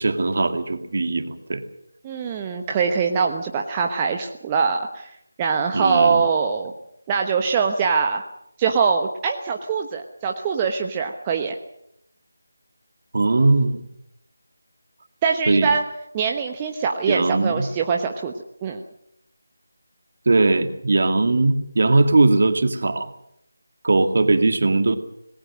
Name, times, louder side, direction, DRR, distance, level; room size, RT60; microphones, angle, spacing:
voice 1, 0.0-1.6 5.7-6.3 13.1-13.8 15.5-15.7 17.1-17.7 20.3-23.1 23.8-25.0, right 3 dB, 50° right, 7 dB, 2.3 m, -19 dB
voice 2, 2.0-5.1 5.4-6.7 7.1-8.2 8.6-11.6 15.2-15.8 16.1-18.3 18.6-18.8, right 5 dB, 15° right, 2 dB, 1.1 m, -23 dB
26.5 x 19.5 x 6.4 m, 0.76 s
figure-of-eight pair, 160°, 0 cm